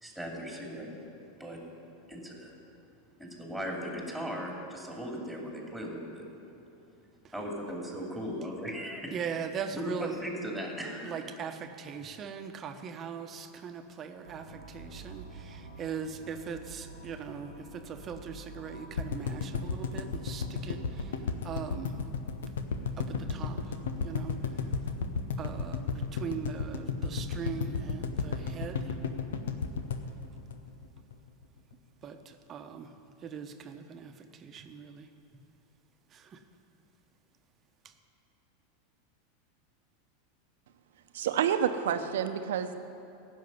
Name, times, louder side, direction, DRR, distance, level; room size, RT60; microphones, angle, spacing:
voice 1, 0.0-0.9 1.4-1.6 2.1-2.5 3.2-6.2 7.3-9.2 9.7-11.2, equal, ahead, -1 dB, 2.7 m, -37 dB
voice 2, 9.1-10.1 11.0-22.0 23.0-23.7 24.0-24.4 25.4-29.0 32.0-32.9 33.2-35.1 36.1-36.4 37.8-37.9, right 7 dB, 35° right, 6 dB, 1.0 m, -40 dB
sound 1, 14.2-21.2, right 2 dB, 90° left, 2.6 m, -48 dB
sound 2, 19.0-31.1 31.4-31.5 31.7-31.8, left 5 dB, 70° left, 0.9 m, -33 dB
voice 3, 41.1-42.8, right 9 dB, 70° right, 9 dB, 0.8 m, -28 dB
15.5 x 6.5 x 9.5 m, 2.7 s
hypercardioid pair, 90°, 0 cm